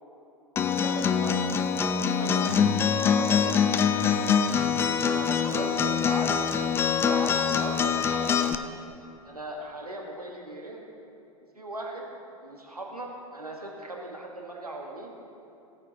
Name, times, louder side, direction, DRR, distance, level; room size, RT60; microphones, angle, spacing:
Acoustic guitar, 0.6-8.5, left 7 dB, 15° left, 0.3 m, -24 dB
voice 1, 0.8-1.4 2.2-2.4 3.0-4.4 5.1-6.3 7.0-8.6 9.2-10.8 11.5-12.1 12.4-15.1, right 1 dB, 85° right, 0 dB, 1.3 m, -38 dB
17.5 x 9.4 x 2.8 m, 2.9 s
figure-of-eight pair, 95°, 19 cm